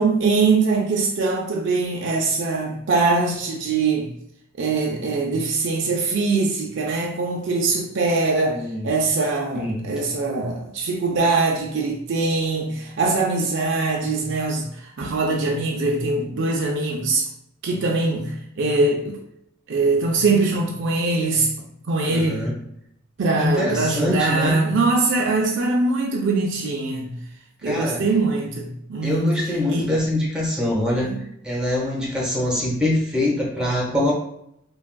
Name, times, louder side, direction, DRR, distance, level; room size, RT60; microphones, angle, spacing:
voice 1, 0.0-4.1 4.6-17.3 17.6-19.2 19.7-21.5 21.9-22.5 23.2-27.2 27.6-29.4 29.7-29.9 31.0-31.2, right 3 dB, 65° right, 0.4 m, -22 dB
voice 2, 8.5-8.9 9.5-9.9 22.0-22.5 23.4-24.6 27.6-28.0 29.0-31.1 31.4-34.1, left 1 dB, 5° right, 0.8 m, -24 dB
3.5 x 2.3 x 2.2 m
head